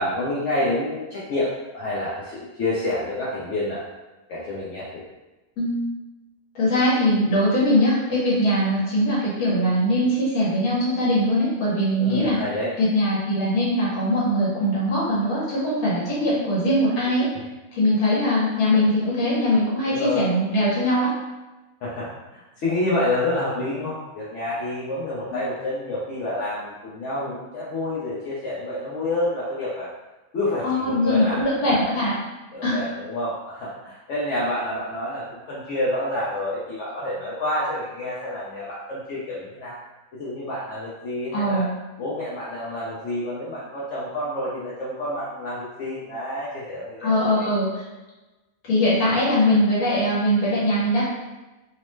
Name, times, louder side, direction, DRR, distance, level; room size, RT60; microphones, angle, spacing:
voice 1, 0.0-3.8 4.3-5.0 12.0-12.7 19.9-20.3 21.8-29.9 30.3-31.9 32.5-39.8 40.1-41.7 42.0-47.5, left 1 dB, 65° left, -7 dB, 0.9 m, -28 dB
voice 2, 6.5-12.4 12.8-17.3 17.7-21.1 30.6-32.1 32.6-32.8 41.3-41.7 47.0-47.7 48.6-51.0, equal, 85° left, -7 dB, 1.4 m, -21 dB
3.1 x 2.0 x 3.0 m, 1.1 s
omnidirectional pair, 1.5 m